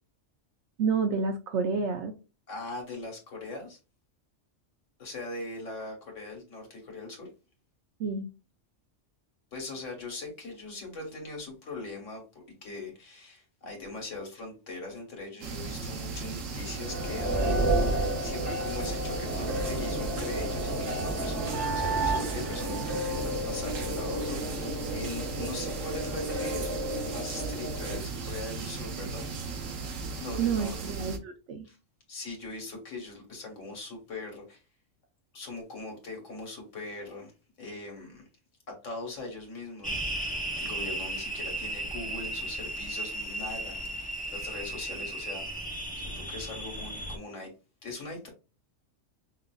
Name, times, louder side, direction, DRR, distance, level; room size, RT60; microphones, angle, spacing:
voice 1, 0.8-2.1 8.0-8.3 30.4-31.7, right 5 dB, 70° right, 5 dB, 0.8 m, -29 dB
voice 2, 2.5-3.8 5.0-7.3 9.5-26.7 27.0-29.3 30.2-30.9 31.6-31.8 32.1-34.6 35.3-37.3 37.6-38.3 38.7-40.0 40.6-47.5 47.8-48.3, left 2 dB, 70° left, 1 dB, 1.7 m, -41 dB
sound 1, 15.4-31.2, right 4 dB, 90° right, 1.2 m, -37 dB
sound 2, 16.6-28.0, right 1 dB, 45° right, 2.1 m, -31 dB
sound 3, 39.8-47.2, right 1 dB, 15° left, 0.3 m, -35 dB
5.6 x 2.5 x 2.3 m, 0.30 s
omnidirectional pair, 1.3 m